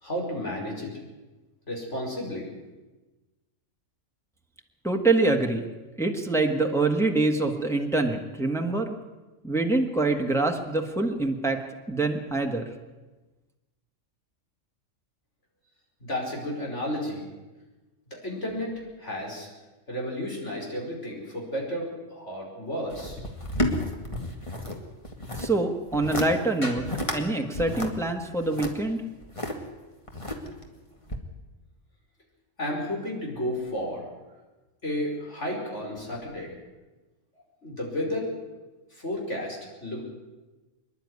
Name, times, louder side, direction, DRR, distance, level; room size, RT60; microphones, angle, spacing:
voice 1, 0.0-0.9 1.7-2.5 16.0-17.2 18.2-18.7 19.0-19.5 19.9-23.2 32.6-34.0 34.8-36.5 37.6-38.3 39.0-40.0, left 1 dB, 65° left, -1 dB, 5.4 m, -32 dB
voice 2, 4.8-5.6 6.0-9.0 9.4-11.6 11.9-12.7 25.4-26.8 27.1-29.0, right 2 dB, ahead, 2 dB, 1.6 m, -25 dB
sound 1, 22.9-24.8 25.0-25.5 25.9-26.3 26.6-27.2 27.5-29.5 30.1-30.7 31.1-31.2, left 1 dB, 25° left, 2.3 m, -31 dB
25.5 x 11.0 x 9.7 m, 1.2 s
omnidirectional pair, 1.3 m